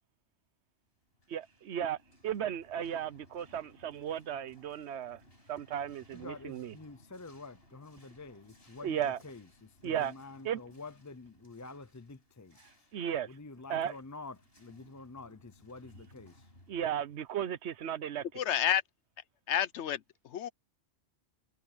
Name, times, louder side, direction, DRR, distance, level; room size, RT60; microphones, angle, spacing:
sound 1, 1.0-18.4, left 1 dB, 60° left, 7.0 m, -62 dB
voice 1, 1.3-5.2 5.5-6.8 8.8-9.2 9.8-10.1 10.4-10.6 12.9-13.3 13.7-14.0 16.7-18.2, right 9 dB, 80° right, 1.0 m, -35 dB
voice 2, 6.1-9.0 9.2-12.6 13.3-16.4, left 3 dB, 25° left, 0.4 m, -48 dB
voice 3, 18.3-18.8 19.5-20.5, left 10 dB, 85° left, 1.0 m, -30 dB
omnidirectional pair, 1.1 m